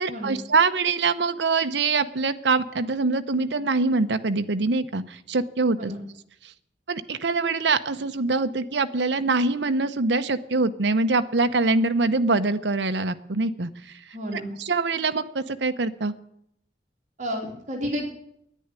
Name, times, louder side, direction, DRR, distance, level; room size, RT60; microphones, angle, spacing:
voice 1, 0.0-5.9 6.9-13.7 14.6-16.1, right 3 dB, 80° right, 10 dB, 0.8 m, -24 dB
voice 2, 14.1-14.5 17.2-18.0, equal, 45° right, 0 dB, 3.1 m, -31 dB
10.0 x 10.0 x 9.6 m, 0.72 s
head